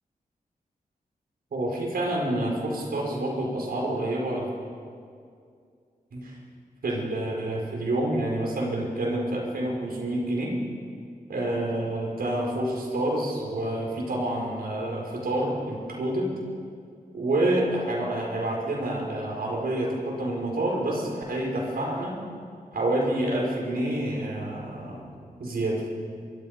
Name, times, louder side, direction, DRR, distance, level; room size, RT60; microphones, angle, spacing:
voice 1, 1.5-4.5 6.1-6.4 6.8-10.5 11.3-16.3 17.1-22.2 22.7-25.0 25.4-25.8, right 1 dB, 80° right, -1 dB, 5.7 m, -28 dB
27.0 x 25.0 x 5.4 m, 2.3 s
wide cardioid pair, 155°, 15 cm